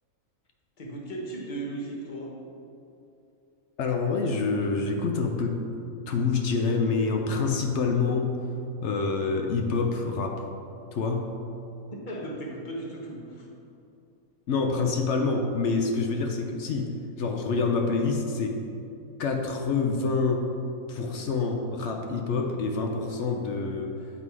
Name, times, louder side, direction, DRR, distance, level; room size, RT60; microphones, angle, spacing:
voice 1, 0.8-2.4 11.9-13.5, right 1 dB, 35° left, -2 dB, 1.0 m, -36 dB
voice 2, 3.8-5.6 6.1-8.5 8.8-10.4 10.9-11.3 14.5-18.6 19.2-20.5 20.9-24.1, left 4 dB, 65° left, 3 dB, 0.8 m, -27 dB
8.1 x 3.7 x 4.7 m, 2.6 s
omnidirectional pair, 1.5 m